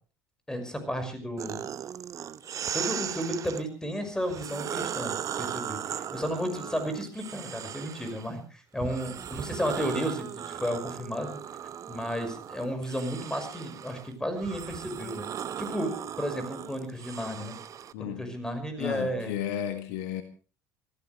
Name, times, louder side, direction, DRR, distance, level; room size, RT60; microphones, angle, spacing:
voice 1, 0.5-1.7 2.7-11.4 11.9-15.3 15.6-17.5 18.0-19.3, equal, 5° left, 5.9 m, -33 dB
sound 1, 1.4-3.6 4.2-8.3 8.8-17.9, right 9 dB, 35° right, 0.9 m, -37 dB
voice 2, 17.9-18.3 18.8-20.2, left 10 dB, 60° left, 1.8 m, -33 dB
26.0 x 15.0 x 3.4 m
figure-of-eight pair, 65°, 10 cm